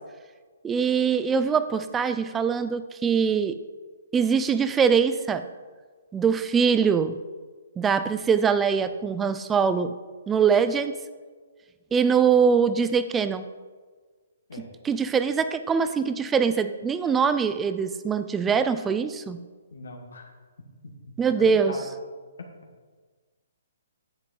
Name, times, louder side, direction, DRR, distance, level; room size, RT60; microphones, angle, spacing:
voice 1, 0.6-3.6 4.1-5.4 6.1-7.2 7.8-10.0 10.3-11.0 11.9-13.4 14.6-19.4 21.2-21.7, right 6 dB, 10° right, 12 dB, 0.4 m, -23 dB
voice 2, 19.7-20.3 21.1-21.9, left 3 dB, 85° left, 1 dB, 1.7 m, -39 dB
9.9 x 7.6 x 4.1 m, 1.5 s
hypercardioid pair, 145°, 0 cm